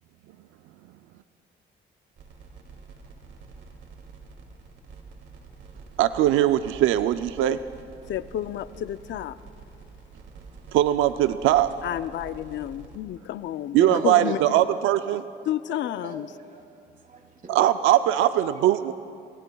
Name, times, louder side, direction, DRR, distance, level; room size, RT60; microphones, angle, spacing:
sound 1, 2.2-13.0, right 4 dB, 70° right, 2.4 m, -47 dB
voice 1, 6.0-7.6 10.7-11.7 13.7-15.2 17.5-18.9, right 12 dB, 90° right, 11 dB, 0.4 m, -21 dB
voice 2, 8.1-9.4 11.8-14.6 15.5-16.3, left 12 dB, 70° left, 14 dB, 0.5 m, -31 dB
voice 3, 13.9-14.4 15.7-16.6 17.0-17.5, right 2 dB, 45° right, 2 dB, 2.7 m, -41 dB
27.0 x 22.5 x 2.3 m, 2.5 s
cardioid pair, 90°, 20 cm